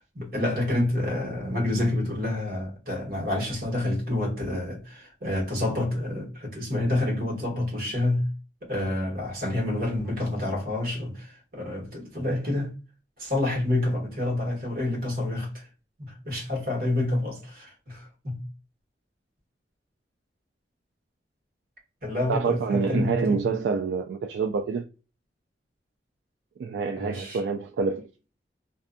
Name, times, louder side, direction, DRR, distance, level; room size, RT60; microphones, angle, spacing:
voice 1, 0.0-8.3 8.7-12.7 13.2-15.7 16.0-18.4 22.0-23.4 27.0-27.4, left 1 dB, 55° right, 1.3 m, -28 dB
voice 2, 22.3-24.8 26.6-28.1, right 5 dB, 80° right, 0.3 m, -27 dB
2.5 x 2.5 x 2.2 m
head